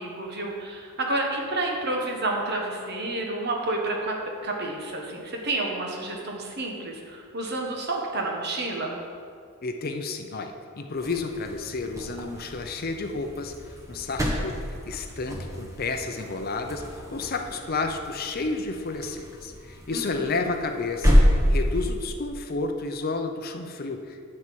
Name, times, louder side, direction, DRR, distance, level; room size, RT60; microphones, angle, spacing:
voice 1, 0.0-9.0 19.9-20.3, right 2 dB, 50° right, 1 dB, 1.3 m, -30 dB
voice 2, 9.6-14.5 14.9-24.2, left 3 dB, 45° left, 5 dB, 0.6 m, -31 dB
sound 1, 10.9-22.1, equal, 15° right, 1.2 m, -28 dB
9.5 x 4.4 x 7.5 m, 2.2 s
head